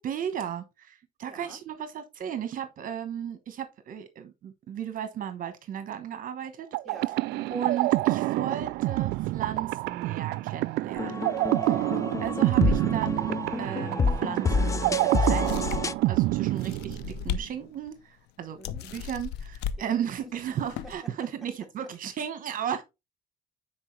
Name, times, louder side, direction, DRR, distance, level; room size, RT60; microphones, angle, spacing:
voice 1, 0.0-6.7 7.5-11.2 11.6-11.8 12.2-15.7 16.1-17.0 17.2-18.6 18.9-22.8, right 9 dB, 55° right, 1.1 m, -35 dB
voice 2, 1.3-1.6 6.8-7.6 11.8-12.4 16.3-16.7 18.6-18.9 19.8-19.9 20.6-21.1, right 1 dB, ahead, 2.3 m, -49 dB
sound 1, 6.7-17.4, right 18 dB, 80° right, 0.4 m, -27 dB
sound 2, 11.0-15.9, left 4 dB, 20° left, 0.4 m, -28 dB
sound 3, 15.5-16.0 16.6-17.5 17.9-18.0 18.6-19.8 20.5-20.9, left 8 dB, 85° left, 0.7 m, -34 dB
9.9 x 4.5 x 3.2 m
cardioid pair, 110°, 17 cm